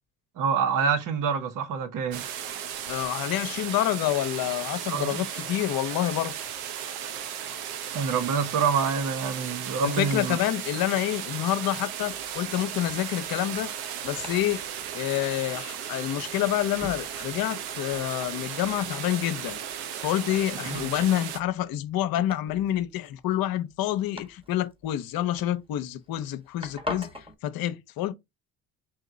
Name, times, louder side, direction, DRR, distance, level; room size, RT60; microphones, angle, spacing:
voice 1, 0.4-2.2 4.9-5.2 7.9-10.4 20.7-20.9, right 6 dB, 50° right, 1.1 m, -26 dB
sound 1, 2.1-21.4, right 9 dB, 75° right, 0.8 m, -36 dB
voice 2, 2.9-6.3 9.8-13.7 14.0-14.6 14.9-19.6 20.0-27.1 27.4-28.1, left 13 dB, 60° left, 0.8 m, -28 dB
Domestic sounds home sounds, 11.8-27.3, left 2 dB, 15° right, 1.4 m, -45 dB
4.1 x 2.9 x 3.8 m
hypercardioid pair, 65°, 40 cm